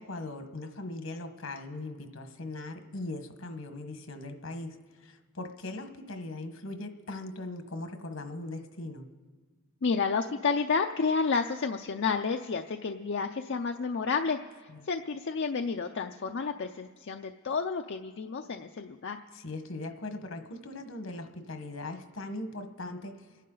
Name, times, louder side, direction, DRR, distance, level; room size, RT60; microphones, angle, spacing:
voice 1, 0.0-9.0 14.7-14.8 19.3-23.3, left 2 dB, 80° left, 7 dB, 1.3 m, -40 dB
voice 2, 9.8-14.4 14.8-19.2, left 5 dB, 60° left, 5 dB, 0.5 m, -30 dB
29.5 x 11.0 x 3.9 m, 1.4 s
head